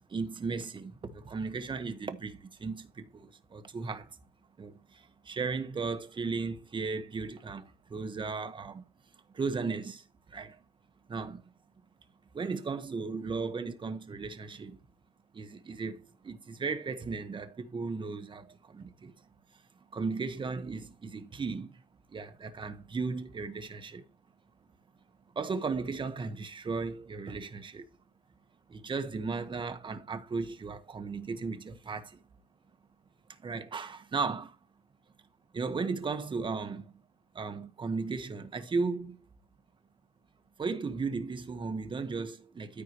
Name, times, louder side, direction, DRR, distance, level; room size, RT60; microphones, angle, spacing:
voice 1, 0.1-4.2 4.6-8.8 9.3-10.6 11.1-11.4 12.3-14.8 15.3-19.6 19.9-21.8 22.1-24.0 25.3-27.9 28.7-32.2 33.3-34.6 35.5-37.0 37.3-39.2 40.6-42.8, right 4 dB, 30° right, 1.5 m, -36 dB
13.5 x 4.7 x 3.1 m
cardioid pair, 110°, 17 cm